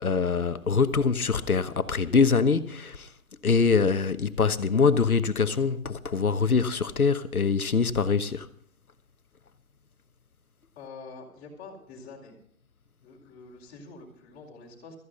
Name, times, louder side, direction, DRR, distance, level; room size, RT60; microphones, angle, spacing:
voice 1, 0.0-3.1 3.4-8.5, left 5 dB, 90° left, 1.2 m, -24 dB
voice 2, 10.8-12.4 13.0-14.9, left 4 dB, 20° left, 4.3 m, -46 dB
15.5 x 14.0 x 3.9 m
figure-of-eight pair, 135°, 42 cm